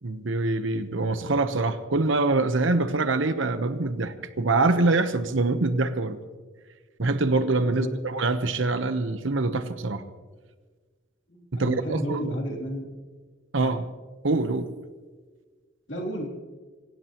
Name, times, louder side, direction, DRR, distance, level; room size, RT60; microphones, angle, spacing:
voice 1, 0.0-6.2 7.0-10.0 11.5-12.2 13.5-13.8 14.2-14.7, right 3 dB, 70° right, 10 dB, 1.0 m, -24 dB
voice 2, 7.6-7.9 11.3-12.9 13.5-13.8 15.9-16.3, right 1 dB, 60° left, 0 dB, 3.2 m, -32 dB
26.0 x 16.5 x 3.0 m, 1.4 s
head